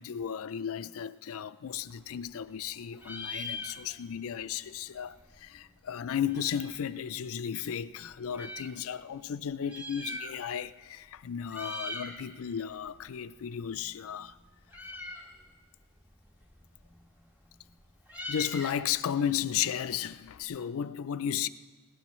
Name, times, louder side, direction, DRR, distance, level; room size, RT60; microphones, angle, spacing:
voice 1, 0.0-14.4 18.3-21.5, left 8 dB, 65° left, 0.4 m, -34 dB
Meow, 1.7-2.7 2.9-4.2 4.5-4.6 4.8-6.9 7.5-8.7 9.5-10.7 11.0-11.2 11.5-12.2 12.6-20.4, left 1 dB, 10° right, 2.0 m, -43 dB
20.5 x 17.5 x 3.1 m
head